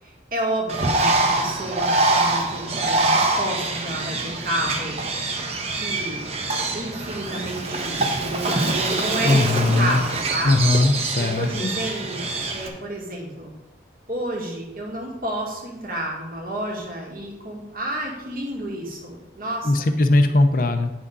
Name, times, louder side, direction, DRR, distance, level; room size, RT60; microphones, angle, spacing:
voice 1, 0.0-5.0 5.8-6.3 6.7-10.5 11.2-13.5 14.1-19.9, right 1 dB, 50° right, -2 dB, 2.0 m, -30 dB
Bird, 0.7-12.7, right 2 dB, 35° right, 1.0 m, -24 dB
voice 2, 9.2-10.0 10.4-11.7 19.6-20.9, left 2 dB, 50° left, 7 dB, 0.6 m, -19 dB
9.3 x 6.1 x 4.0 m, 0.98 s
head